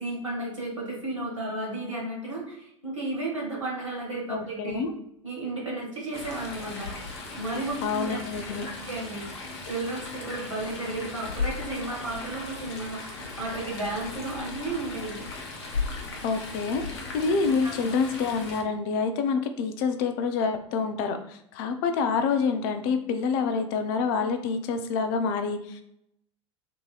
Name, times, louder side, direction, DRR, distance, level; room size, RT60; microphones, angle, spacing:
voice 1, 0.0-4.8 5.2-6.9 7.4-8.2 8.5-9.3 9.6-15.2 17.4-17.9, right 2 dB, 85° right, -4 dB, 1.3 m, -33 dB
voice 2, 4.3-4.9 7.8-8.7 16.2-25.8, left 5 dB, 45° left, 8 dB, 0.4 m, -27 dB
Chatter / Stream, 6.1-18.6, left 3 dB, 60° left, 0.8 m, -37 dB
3.7 x 2.7 x 2.3 m, 0.75 s
figure-of-eight pair, 80°, 16 cm